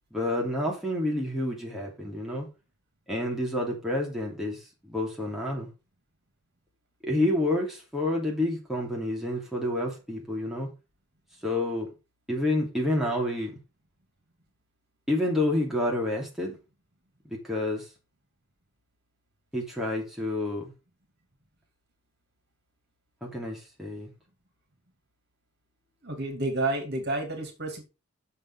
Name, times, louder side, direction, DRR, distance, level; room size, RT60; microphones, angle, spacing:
voice 1, 0.1-2.5 3.1-5.7 7.0-10.7 11.4-11.9 12.3-13.6 15.1-16.6 17.3-17.9 19.5-20.7 23.2-24.1, left 1 dB, ahead, 3.0 m, -29 dB
voice 2, 26.0-27.8, right 2 dB, 50° right, 2.8 m, -30 dB
7.5 x 6.9 x 4.8 m
head